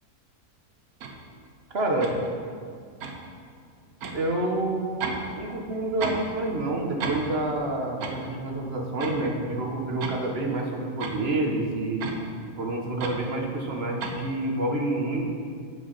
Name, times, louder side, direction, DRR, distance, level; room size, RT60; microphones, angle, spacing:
sound 1, 1.0-1.2 2.0-2.2 3.0-3.2 4.0-4.2 5.0-5.3 5.5-6.3 6.6-6.7 7.0-7.3 8.0-8.2 9.0-9.2 9.8-10.2 11.0-11.2 12.0-12.2 13.0-13.2 14.0-14.2, right 4 dB, 70° right, 1.4 m, -33 dB
voice 1, 1.7-2.1 4.1-12.0 12.6-15.2, right 2 dB, 40° right, 0 dB, 1.4 m, -28 dB
8.2 x 7.9 x 5.6 m, 2.1 s
omnidirectional pair, 1.7 m